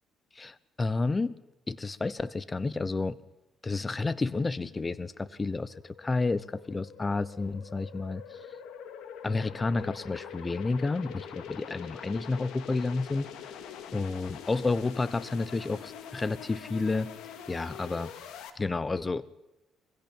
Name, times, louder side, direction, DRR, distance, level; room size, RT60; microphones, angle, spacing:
voice 1, 0.4-1.3 1.7-3.2 3.6-8.4 9.2-13.3 13.9-17.1 17.5-18.1 18.6-19.3, left 3 dB, 25° left, 18 dB, 0.9 m, -30 dB
sound 1, 3.7-18.5, left 8 dB, 85° left, 2.2 m, -45 dB
24.0 x 16.0 x 9.0 m, 0.94 s
cardioid pair, 105°, 0 cm